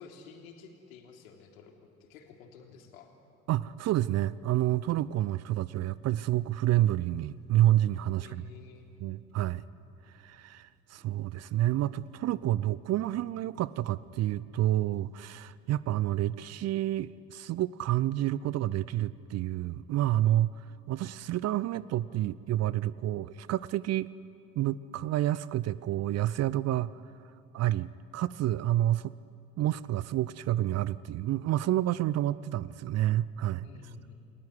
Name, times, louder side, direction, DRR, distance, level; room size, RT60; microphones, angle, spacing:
voice 1, 0.0-3.1 8.2-8.9 33.6-34.1, left 5 dB, 65° left, 3 dB, 3.3 m, -51 dB
voice 2, 3.5-8.4 9.0-9.6 10.2-20.5 20.9-24.1 24.6-26.9 27.5-27.9 28.1-29.1 29.6-33.7, right 14 dB, 35° right, 19 dB, 0.6 m, -29 dB
sound 1, 6.7-15.1, equal, 90° right, 4.0 m, -64 dB
29.0 x 20.0 x 9.7 m, 2.6 s
figure-of-eight pair, 60°, 44 cm